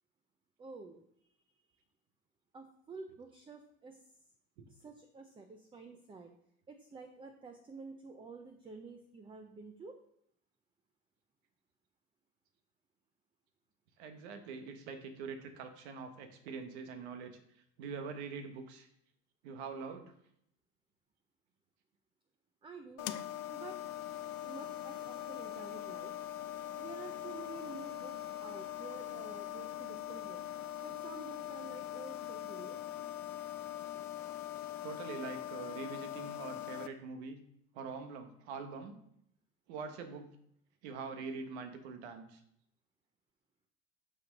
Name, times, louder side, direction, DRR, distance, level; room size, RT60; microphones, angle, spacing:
voice 1, 0.6-1.0 1.3-1.4 2.5-4.1 4.7-6.3 6.7-10.0 22.6-23.2 23.5-23.8 24.4-26.1 26.8-30.4 30.8-32.8, right 4 dB, 15° right, 5 dB, 0.6 m, -50 dB
voice 2, 14.0-17.4 17.8-18.9 19.4-20.1 34.8-37.4 37.7-39.0 39.7-40.4 40.8-42.4, right 5 dB, 90° right, 7 dB, 1.3 m, -44 dB
sound 1, 23.0-36.9, left 13 dB, 60° left, 0.7 m, -42 dB
6.3 x 5.6 x 5.2 m, 0.74 s
cardioid pair, 135°, 32 cm